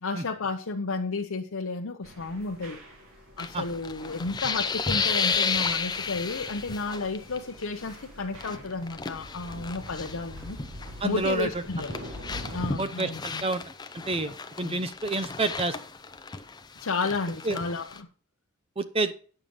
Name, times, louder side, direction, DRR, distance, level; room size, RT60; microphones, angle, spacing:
voice 1, 0.0-2.8 3.4-10.6 11.0-12.0 12.5-13.5 14.6-14.8 16.8-18.1, left 3 dB, 75° left, 2 dB, 0.8 m, -32 dB
sound 1, 2.0-12.7, equal, 65° right, 2.8 m, -45 dB
sound 2, 3.4-7.4 7.6-7.9 8.3-10.9 11.2-18.0, left 5 dB, 20° left, 0.6 m, -33 dB
voice 2, 11.0-11.5 12.8-13.6 14.1-14.3 14.6-15.7 17.4-17.6 18.8-19.1, right 2 dB, 25° right, 12 dB, 0.6 m, -28 dB
9.1 x 6.8 x 5.3 m, 0.41 s
head